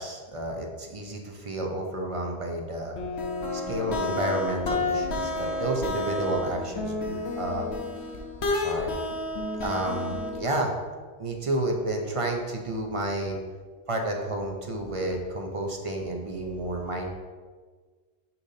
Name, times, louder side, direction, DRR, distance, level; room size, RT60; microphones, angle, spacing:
voice 1, 0.0-3.0 3.5-7.7 8.6-8.9 9.6-10.8 11.2-13.4 13.9-17.1, right 1 dB, 35° right, 2 dB, 0.6 m, -31 dB
sound 1, 3.0-10.6, left 2 dB, 65° left, 1.1 m, -30 dB
6.8 x 5.6 x 2.7 m, 1.5 s
omnidirectional pair, 1.2 m